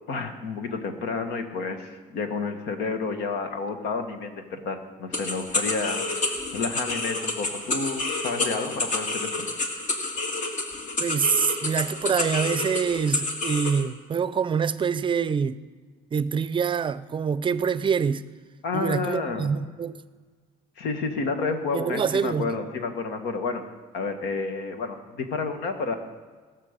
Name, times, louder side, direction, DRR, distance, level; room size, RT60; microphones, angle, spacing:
voice 1, 0.1-9.5 18.6-19.5 20.8-23.6 23.9-26.0, left 4 dB, 80° left, 1.6 m, -30 dB
sound 1, 5.1-13.8, left 3 dB, 50° left, 1.8 m, -29 dB
voice 2, 11.0-15.6 16.1-18.2 18.7-20.0 21.7-22.5, right 6 dB, 30° right, 0.5 m, -25 dB
19.5 x 6.6 x 6.7 m
cardioid pair, 110°, 17 cm